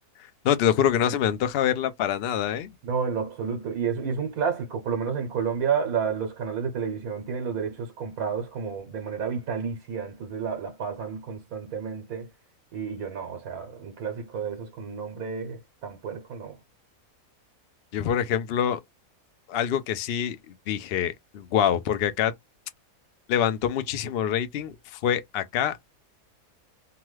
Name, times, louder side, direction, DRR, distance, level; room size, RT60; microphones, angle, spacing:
voice 1, 0.4-2.7 17.9-18.8 19.5-22.3 23.3-25.8, left 9 dB, 70° left, 0.5 m, -25 dB
voice 2, 2.8-12.3 12.7-16.6, right 6 dB, 75° right, 1.2 m, -30 dB
2.9 x 2.3 x 3.1 m
omnidirectional pair, 1.5 m